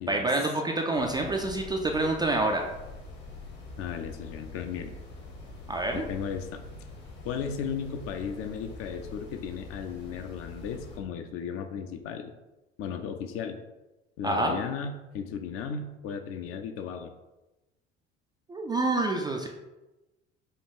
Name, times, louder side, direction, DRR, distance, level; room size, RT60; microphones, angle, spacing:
voice 1, 0.1-2.7 5.7-6.0 14.2-14.6 18.5-19.5, right 2 dB, 15° right, 2 dB, 0.3 m, -27 dB
sound 1, 1.0-11.0, left 3 dB, 55° left, 1.3 m, -45 dB
voice 2, 3.8-4.9 5.9-6.6 7.2-12.3 12.8-13.6 14.2-17.1, left 7 dB, 40° left, 7 dB, 0.5 m, -35 dB
5.3 x 2.3 x 3.7 m, 1.0 s
figure-of-eight pair, 60°, 34 cm